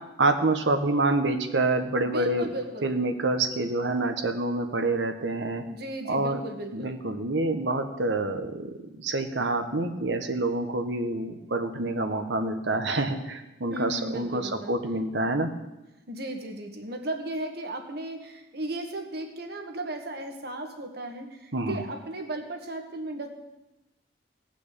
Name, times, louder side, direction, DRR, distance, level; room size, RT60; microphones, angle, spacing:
voice 1, 0.2-2.5 2.8-5.6 6.1-6.4 6.7-15.5 21.5-21.8, right 2 dB, 85° right, 7 dB, 1.4 m, -27 dB
voice 2, 2.0-2.9 5.6-6.9 13.7-14.7 16.1-23.3, right 1 dB, 60° right, 4 dB, 1.9 m, -36 dB
17.5 x 6.0 x 8.4 m, 1.0 s
head